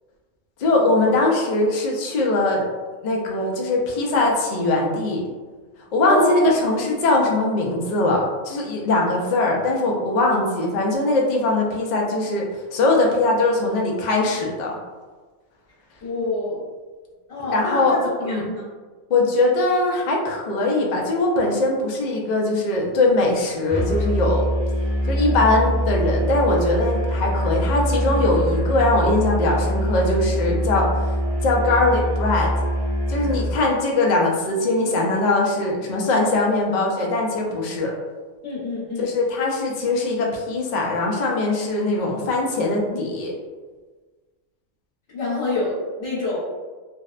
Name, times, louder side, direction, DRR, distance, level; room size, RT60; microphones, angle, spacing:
voice 1, 0.6-2.7 3.0-5.2 5.9-14.8 17.5-18.0 18.2-18.4 19.1-24.5 25.1-30.9 31.4-32.5 33.1-37.9 39.0-43.3, left 2 dB, 75° left, -1 dB, 0.4 m, -21 dB
voice 2, 6.0-6.4 16.0-16.6 17.3-18.7 38.4-39.1 42.9-43.1 45.1-46.4, left 2 dB, 60° left, -9 dB, 1.1 m, -27 dB
Musical instrument, 23.7-33.6, equal, 20° right, 0.3 m, -24 dB
2.5 x 2.0 x 2.4 m, 1.4 s
omnidirectional pair, 1.3 m